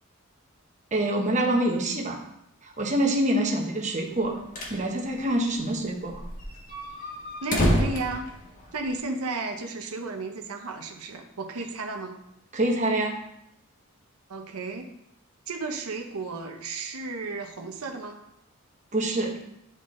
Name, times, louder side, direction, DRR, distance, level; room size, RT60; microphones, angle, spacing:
voice 1, 0.9-2.2 2.6-4.4 4.7-6.2 12.5-13.2 18.9-19.3, right 1 dB, 35° right, 0 dB, 1.0 m, -25 dB
sound 1, 4.2-4.8 5.1-5.2 5.5-5.6 6.0-9.0, equal, 40° left, 1.3 m, -28 dB
voice 2, 7.4-8.3 8.7-12.2 14.3-14.9 15.5-18.2, right 3 dB, 90° right, 4 dB, 0.8 m, -33 dB
10.5 x 3.9 x 3.8 m, 0.80 s
head